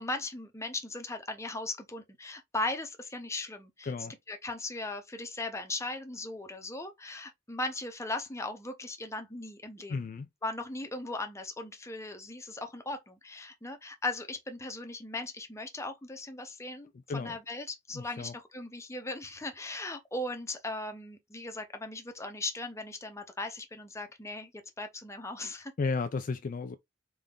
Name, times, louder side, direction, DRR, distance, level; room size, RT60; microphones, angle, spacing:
voice 1, 0.0-3.9 4.3-9.9 10.4-24.5 24.8-25.7, left 2 dB, 15° left, 0.8 m, -38 dB
voice 2, 9.9-10.3 17.1-17.4 17.9-18.3 25.8-26.8, left 4 dB, 45° left, 0.4 m, -33 dB
3.6 x 3.4 x 3.7 m
head